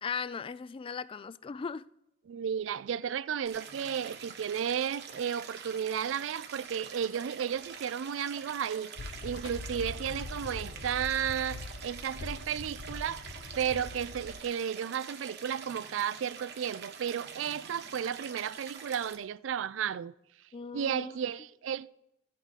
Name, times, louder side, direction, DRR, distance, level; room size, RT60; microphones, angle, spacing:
voice 1, 0.0-1.9 20.5-21.2, left 5 dB, 30° left, 0.3 m, -38 dB
voice 2, 2.3-20.1 20.7-21.9, right 8 dB, 75° right, 0.4 m, -33 dB
Stream, 3.5-19.2, right 6 dB, 60° right, 1.4 m, -45 dB
sound 1, 9.0-14.4, left 3 dB, 65° left, 0.7 m, -43 dB
15.0 x 8.2 x 4.1 m
head